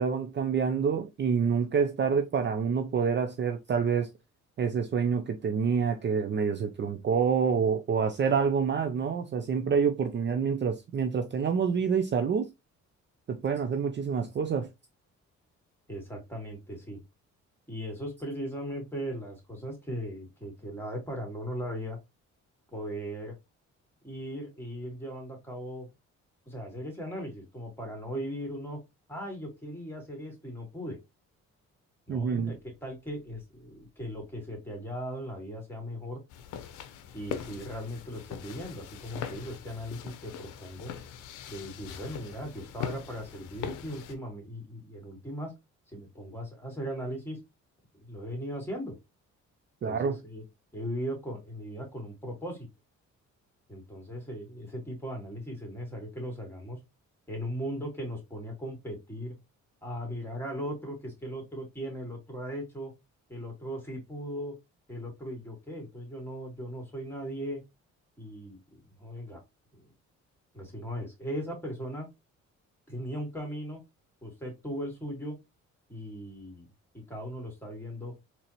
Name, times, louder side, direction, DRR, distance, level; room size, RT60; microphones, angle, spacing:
voice 1, 0.0-4.1 4.6-12.5 13.3-14.7 32.1-32.5 49.8-50.1, right 6 dB, 40° right, 0.5 m, -27 dB
voice 2, 15.9-17.0 17.7-22.0 22.7-23.3 24.0-25.9 26.5-28.8 29.1-31.0 32.1-36.2 37.1-40.9 41.5-45.5 45.9-47.4 48.0-49.0 49.8-50.4 50.7-52.7 53.7-56.8 57.3-59.3 59.8-62.9 63.3-64.6 64.9-67.6 68.2-69.4 69.7-69.8 70.5-72.1 72.9-73.8 74.2-75.4 75.9-76.7 77.1-78.1, equal, 5° left, 2.3 m, -38 dB
sound 1, 36.3-44.1, left 8 dB, 90° left, 0.6 m, -41 dB
4.0 x 3.0 x 2.9 m
cardioid pair, 90°, 30 cm